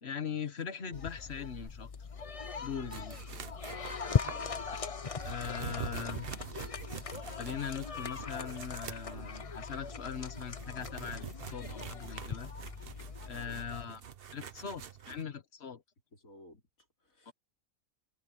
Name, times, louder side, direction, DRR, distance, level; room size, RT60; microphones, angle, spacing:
voice 1, 0.0-2.1 2.6-3.4 5.2-6.3 7.4-12.5 13.3-14.0 14.3-15.8 17.3-17.4, left 7 dB, 50° left, 1.7 m, -40 dB
sound 1, 0.9-13.8, left 6 dB, 35° left, 0.6 m, -39 dB
sound 2, 2.9-15.2, right 8 dB, 50° right, 1.0 m, -46 dB
voice 2, 4.2-4.7 13.2-13.7 16.1-17.3, left 2 dB, 85° left, 4.0 m, -55 dB
omnidirectional pair, 1.4 m